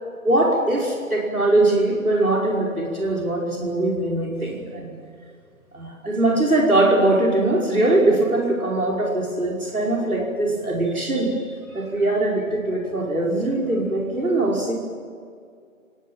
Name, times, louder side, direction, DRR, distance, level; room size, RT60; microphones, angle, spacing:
voice 1, 0.2-5.0 5.7-11.5 11.7-14.7, right 2 dB, 85° right, -2 dB, 5.4 m, -21 dB
29.5 x 18.0 x 7.5 m, 2.2 s
figure-of-eight pair, 155°, 42 cm